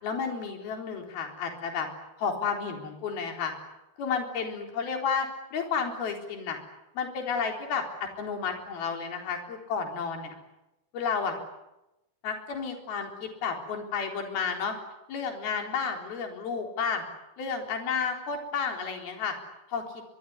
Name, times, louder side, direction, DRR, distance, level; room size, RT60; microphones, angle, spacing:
voice 1, 0.0-1.9 2.2-3.5 4.0-6.6 7.0-7.8 8.2-10.4 10.9-11.4 12.2-14.8 15.1-17.0 17.4-19.4 19.7-19.8, left 6 dB, 65° left, 3 dB, 5.8 m, -31 dB
24.5 x 23.5 x 9.8 m, 0.94 s
omnidirectional pair, 4.7 m